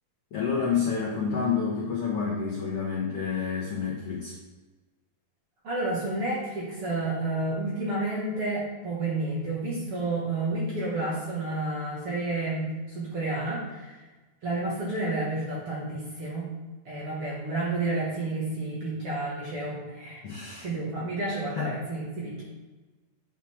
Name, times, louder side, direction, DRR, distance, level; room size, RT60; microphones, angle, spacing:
voice 1, 0.3-4.3 20.2-20.7 21.5-21.7, left 6 dB, 70° left, -4 dB, 1.4 m, -29 dB
voice 2, 5.6-14.0 14.4-16.5 16.9-20.2 20.6-22.4, right 2 dB, 50° right, -6 dB, 2.0 m, -30 dB
8.3 x 6.2 x 3.5 m, 1.2 s
omnidirectional pair, 4.2 m